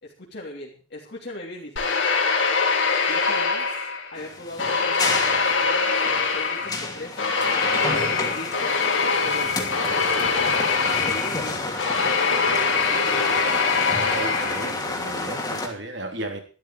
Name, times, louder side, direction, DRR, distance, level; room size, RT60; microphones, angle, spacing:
voice 1, 0.0-2.0 3.1-7.4 7.8-8.7 9.2-13.7, left 1 dB, 60° left, -2 dB, 3.2 m, -40 dB
sound 1, 1.8-4.2 4.6-14.9, left 5 dB, 80° left, 3.4 m, -23 dB
sound 2, 4.2-15.7, left 2 dB, 20° left, 2.8 m, -31 dB
voice 2, 14.1-16.4, right 2 dB, 65° right, 4 dB, 3.4 m, -34 dB
13.0 x 12.5 x 5.0 m, 0.39 s
head